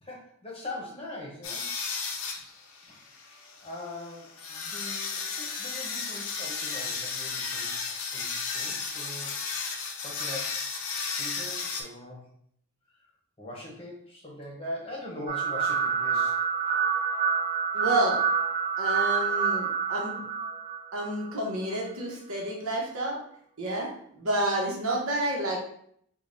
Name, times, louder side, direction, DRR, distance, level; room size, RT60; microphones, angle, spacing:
voice 1, 0.0-1.7 2.9-3.0 3.6-7.7 8.1-9.4 10.0-12.3 13.4-16.4 23.7-23.8, left 1 dB, 25° left, -2 dB, 0.8 m, -41 dB
sound 1, 1.4-11.8, left 5 dB, 75° left, 0.6 m, -34 dB
sound 2, 15.3-21.4, right 6 dB, 25° right, 0.4 m, -27 dB
voice 2, 17.7-18.2 18.8-20.2 20.9-23.2 23.6-23.9 24.1-25.6, right 1 dB, 80° right, -2 dB, 1.0 m, -29 dB
5.2 x 2.3 x 2.6 m, 0.66 s
head